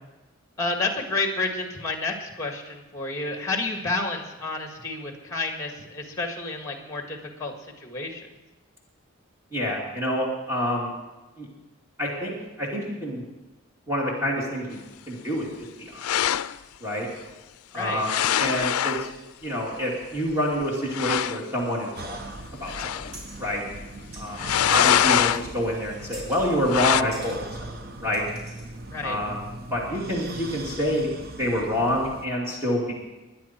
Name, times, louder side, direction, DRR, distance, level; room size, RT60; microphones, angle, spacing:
voice 1, 0.6-7.5 7.8-8.3 17.7-18.0 28.9-29.2, left 3 dB, 15° left, 3 dB, 1.8 m, -30 dB
voice 2, 9.5-10.9 11.4-11.5 12.0-13.2 13.9-14.8 15.1-15.5 15.8-16.0 16.8-17.1 17.7-19.1 19.4-22.2 22.6-22.7 23.4-23.6 24.2-27.7 28.0-28.2 29.0-31.1 31.4-32.9, equal, 10° right, -4 dB, 2.6 m, -27 dB
sound 1, 16.0-16.6 18.0-19.1 20.3-20.4 20.6-20.7 20.9-21.4 22.7-23.2 24.4-25.4 26.7-27.0, left 10 dB, 85° left, 0.4 m, -23 dB
sound 2, 21.9-32.3, right 2 dB, 45° right, 0.9 m, -40 dB
sound 3, 23.1-23.5 24.1-24.8 25.1-25.6 26.1-26.5 27.1-27.4 28.1-28.7, right 2 dB, 85° right, 3.9 m, -45 dB
22.5 x 10.0 x 4.5 m, 1.1 s
head